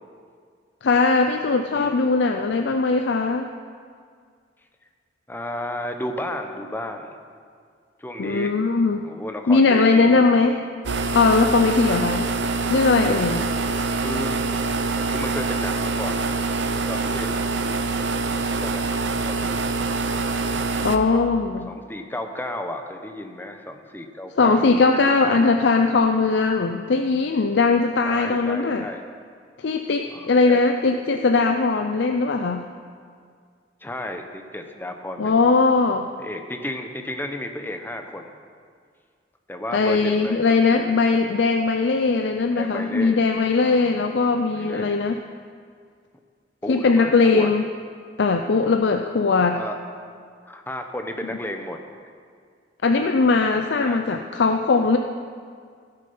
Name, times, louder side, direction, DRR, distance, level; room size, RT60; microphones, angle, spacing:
voice 1, 0.8-3.5 8.2-9.0 9.5-10.6 11.1-12.3 12.7-13.5 20.8-21.7 24.4-28.8 29.6-32.6 35.2-36.1 39.7-45.2 46.7-47.6 48.2-49.6 52.8-55.0, left 4 dB, 70° left, 5 dB, 0.5 m, -20 dB
voice 2, 5.3-7.2 8.0-8.5 9.0-10.2 14.0-14.5 15.1-19.8 20.8-21.2 21.7-24.7 25.2-25.5 28.0-29.0 30.1-30.6 33.8-35.5 36.2-38.3 39.5-41.0 42.5-43.3 43.5-44.2 44.4-45.0 46.6-47.5 49.6-49.7 50.4-51.8 53.8-54.0, left 1 dB, 10° left, 5 dB, 0.8 m, -33 dB
sound 1, 10.8-21.0, right 3 dB, 80° right, 0.7 m, -25 dB
16.0 x 6.6 x 5.5 m, 2.1 s
head